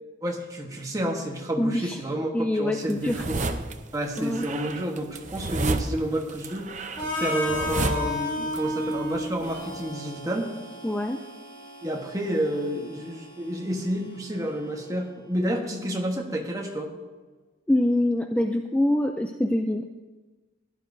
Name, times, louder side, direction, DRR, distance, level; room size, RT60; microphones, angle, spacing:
voice 1, 0.2-3.4 3.9-6.7 7.0-10.5 11.8-16.9, equal, 20° right, 1 dB, 1.2 m, -30 dB
voice 2, 1.6-2.0 2.3-3.2 4.2-4.5 10.8-11.2 17.7-19.9, left 1 dB, 5° left, 5 dB, 0.3 m, -25 dB
sound 1, 2.9-3.8 4.2-8.6 8.8-9.8, right 3 dB, 40° right, 0.6 m, -31 dB
Harmonica, 7.0-14.9, left 1 dB, 25° left, 2.9 m, -34 dB
15.5 x 11.0 x 2.7 m, 1.2 s
head